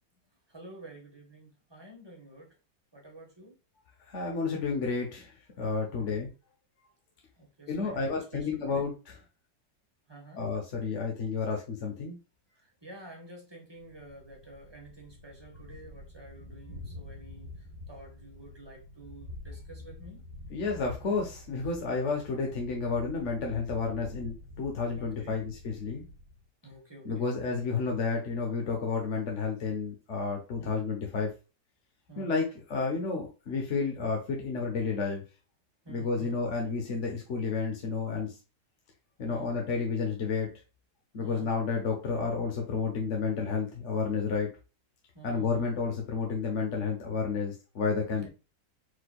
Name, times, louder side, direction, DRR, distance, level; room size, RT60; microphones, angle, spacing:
voice 1, 0.5-2.5 2.9-3.5 5.9-6.3 7.4-8.9 10.1-10.4 12.5-20.2 24.9-25.4 26.6-27.3 30.6-30.8 32.1-32.3 35.8-36.4 39.3-39.5 41.2-41.5 45.1-45.8 48.2-48.3, right 2 dB, 15° right, 0 dB, 1.2 m, -50 dB
voice 2, 4.1-6.3 7.7-8.9 10.3-12.1 20.5-26.0 27.0-31.3 32.2-35.2 35.9-38.4 39.2-40.5 41.1-44.5 45.2-48.3, left 4 dB, 50° left, 0 dB, 1.1 m, -31 dB
Thunder, 13.8-26.4, left 2 dB, 45° right, 1.6 m, -47 dB
4.8 x 4.1 x 2.3 m, 0.31 s
omnidirectional pair, 2.0 m